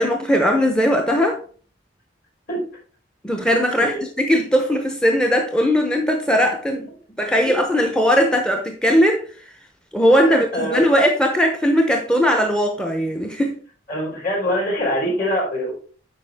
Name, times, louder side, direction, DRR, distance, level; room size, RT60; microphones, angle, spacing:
voice 1, 0.0-1.4 3.2-6.9 7.2-9.3 9.9-13.6, equal, 5° left, 0.7 m, -19 dB
voice 2, 10.1-10.9 13.9-15.7, equal, 50° left, 3.9 m, -24 dB
8.4 x 5.1 x 3.5 m
head